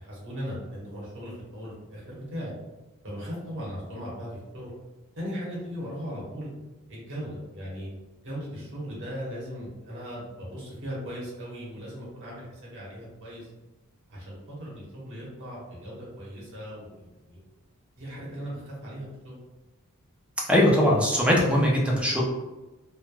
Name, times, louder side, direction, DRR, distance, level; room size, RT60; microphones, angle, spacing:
voice 1, 0.0-2.5 3.0-4.7 5.2-6.5 6.9-7.9 8.2-13.5 14.1-17.4 18.0-19.3, equal, 60° right, -6 dB, 1.0 m, -38 dB
voice 2, 20.5-22.2, equal, 5° right, -2 dB, 0.4 m, -21 dB
3.2 x 2.1 x 2.2 m, 1.1 s
head